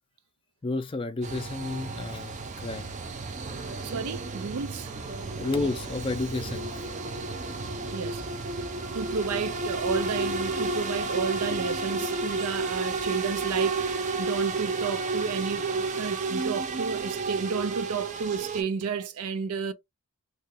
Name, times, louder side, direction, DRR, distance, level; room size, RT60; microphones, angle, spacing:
voice 1, 0.6-2.9 5.3-6.7, left 2 dB, 25° left, 0.4 m, -31 dB
sound 1, 1.2-18.6, right 3 dB, 35° right, 0.4 m, -31 dB
voice 2, 3.8-4.9 7.9-8.2 8.9-19.7, right 5 dB, 85° right, 0.5 m, -32 dB
3.0 x 2.2 x 3.0 m
head